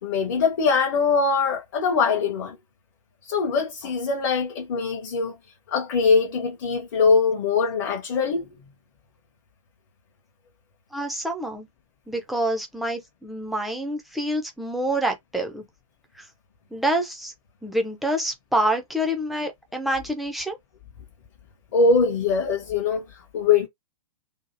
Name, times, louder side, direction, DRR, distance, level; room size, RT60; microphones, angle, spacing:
voice 1, 0.0-2.6 3.2-5.4 5.7-8.5 21.7-23.7, left 4 dB, 35° left, 0.7 m, -22 dB
voice 2, 10.9-11.7 12.1-15.6 16.2-16.3 16.7-17.3 17.6-20.6, right 1 dB, ahead, 0.3 m, -27 dB
2.7 x 2.4 x 2.6 m
figure-of-eight pair, 115°, 17 cm